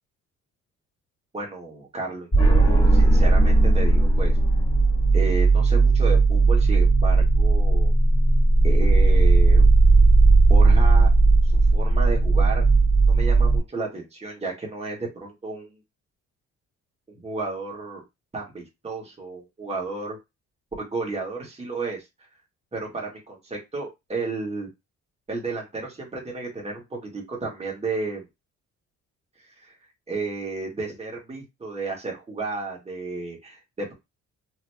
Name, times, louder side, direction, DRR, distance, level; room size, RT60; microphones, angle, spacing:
voice 1, 1.3-4.4 5.1-7.9 8.6-9.6 10.5-11.1 11.4-12.6 13.1-15.8 17.2-18.0 18.3-20.2 20.8-22.0 22.7-24.7 25.3-28.3 29.6-29.7 30.1-33.9, right 3 dB, 20° right, -1 dB, 1.6 m, -32 dB
sound 1, 2.3-13.6, right 3 dB, 15° left, 1.8 m, -17 dB
3.9 x 3.0 x 2.2 m, 0.22 s
cardioid pair, 90°, 30 cm